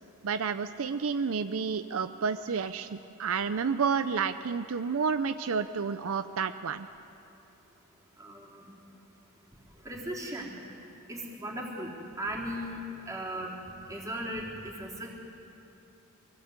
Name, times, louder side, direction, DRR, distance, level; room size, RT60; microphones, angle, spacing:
voice 1, 0.2-6.9, right 5 dB, 70° right, 10 dB, 0.5 m, -30 dB
voice 2, 8.2-8.7 9.8-10.5 11.1-12.8 13.1-13.6 13.9-15.1, right 1 dB, 15° right, -3 dB, 3.6 m, -37 dB
24.0 x 16.5 x 8.1 m, 2.9 s
head